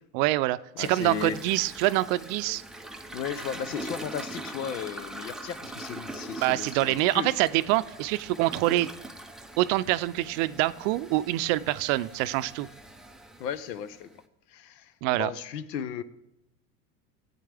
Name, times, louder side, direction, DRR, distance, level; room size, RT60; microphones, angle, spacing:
voice 1, 0.1-2.6 6.4-8.9 9.6-12.7 15.0-15.3, right 17 dB, 55° right, 0.5 m, -25 dB
voice 2, 0.8-1.4 3.1-7.3 13.4-14.2 14.5-16.0, left 8 dB, 80° left, 0.9 m, -35 dB
Toilet flush, 0.8-14.2, right 1 dB, ahead, 0.3 m, -42 dB
14.5 x 8.3 x 3.4 m
hypercardioid pair, 95°, 49 cm